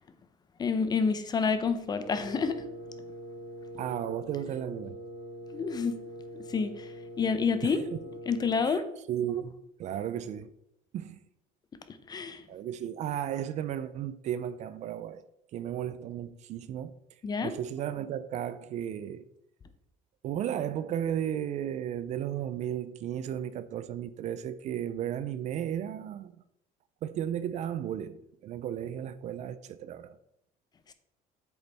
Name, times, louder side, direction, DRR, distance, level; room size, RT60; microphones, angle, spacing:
voice 1, 0.6-2.7 5.5-6.0 6.5-7.8 8.3-8.8 11.9-12.4 17.2-17.5 30.9-31.0, left 5 dB, 25° left, 0.7 m, -29 dB
Wind instrument woodwind instrument, 2.0-8.7, equal, 85° left, 1.4 m, -44 dB
voice 2, 3.8-5.0 7.6-7.8 8.7-8.8 9.1-10.5 10.9-11.2 12.5-15.2 15.5-17.0 17.4-19.3 20.2-26.4 27.0-30.2, right 10 dB, 50° right, 0.5 m, -34 dB
8.2 x 6.9 x 3.4 m
cardioid pair, 145°, 16 cm